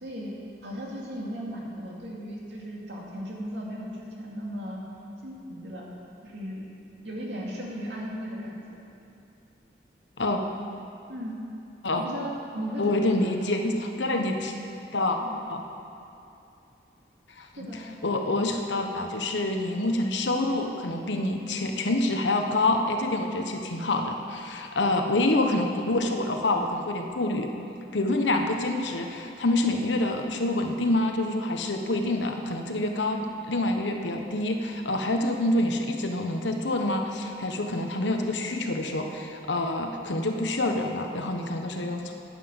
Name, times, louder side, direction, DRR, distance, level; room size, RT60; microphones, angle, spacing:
voice 1, 0.0-0.3 0.6-4.8 5.2-5.8 6.2-6.7 7.0-8.8 11.1-11.3 11.9-13.3 15.2-15.4 17.6-17.8 23.3-23.5, equal, 70° right, -3 dB, 2.4 m, -36 dB
voice 2, 12.8-14.5 14.9-15.2 15.5-15.6 17.4-17.5 18.0-27.5 27.9-42.1, left 2 dB, 85° left, 4 dB, 1.1 m, -27 dB
10.0 x 9.5 x 7.1 m, 2.7 s
head